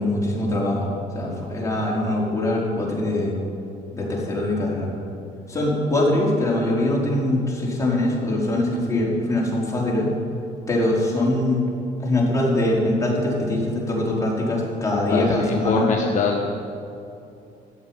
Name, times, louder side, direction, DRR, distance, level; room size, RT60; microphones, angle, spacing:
voice 1, 0.0-3.3 3.9-4.9 5.5-10.1 10.7-11.6 12.0-15.9, left 1 dB, 20° left, -4 dB, 4.5 m, -23 dB
voice 2, 15.1-16.5, left 4 dB, 50° left, 0 dB, 1.4 m, -23 dB
14.0 x 8.3 x 9.0 m, 2.7 s
cardioid pair, 95°, 15 cm